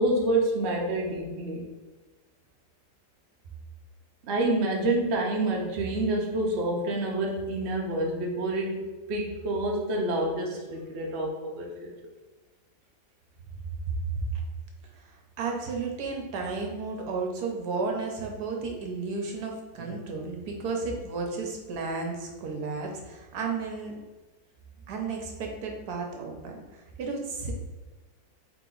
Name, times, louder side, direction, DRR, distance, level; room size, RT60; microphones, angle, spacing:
voice 1, 0.0-1.6 4.3-11.9, right 1 dB, 90° right, -1 dB, 0.5 m, -28 dB
voice 2, 15.0-24.0 24.9-27.5, right 4 dB, 65° right, 1 dB, 1.0 m, -33 dB
3.5 x 2.9 x 3.8 m, 1.2 s
omnidirectional pair, 2.1 m